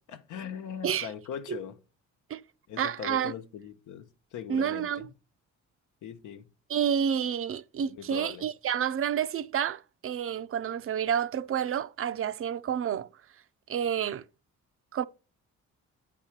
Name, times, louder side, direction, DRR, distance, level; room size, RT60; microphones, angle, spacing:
voice 1, 0.1-1.8 2.7-4.1 4.3-4.9 6.0-6.5 7.9-8.5, left 8 dB, 80° left, 1.1 m, -40 dB
voice 2, 2.8-3.3 4.5-5.1 6.7-13.1 13.7-14.2 14.9-15.0, right 8 dB, 45° right, 0.5 m, -29 dB
8.6 x 4.1 x 5.9 m
cardioid pair, 90°, 30 cm